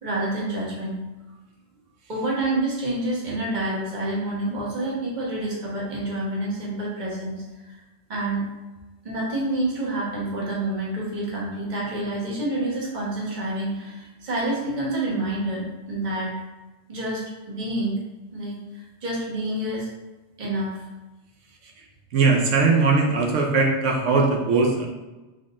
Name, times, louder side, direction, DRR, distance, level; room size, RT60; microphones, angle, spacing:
voice 1, 0.0-0.9 2.1-7.8 8.1-8.4 9.0-16.3 16.9-18.0 18.3-19.9 20.4-20.8, right 1 dB, 40° right, -5 dB, 1.3 m, -28 dB
voice 2, 22.1-24.9, right 4 dB, 90° right, 0 dB, 1.1 m, -20 dB
4.2 x 3.1 x 3.6 m, 1.1 s
omnidirectional pair, 1.2 m